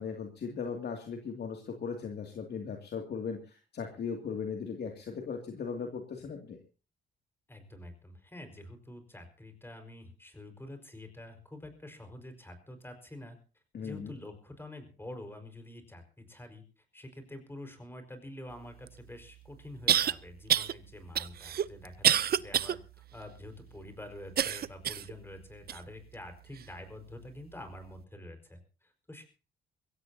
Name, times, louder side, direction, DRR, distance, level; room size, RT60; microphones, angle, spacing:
voice 1, 0.0-6.6 13.7-14.1, left 6 dB, 55° left, 3 dB, 2.5 m, -38 dB
voice 2, 7.5-13.4 13.8-29.2, left 1 dB, 10° left, 7 dB, 4.9 m, -47 dB
sound 1, 18.9-19.0 19.9-20.1 20.5-20.7 21.1-22.7 23.2-23.3 24.4-25.1 25.7-25.8 26.6-26.7, right 10 dB, 50° right, 0.6 m, -27 dB
22.5 x 16.5 x 2.8 m, 0.35 s
cardioid pair, 90°, 20 cm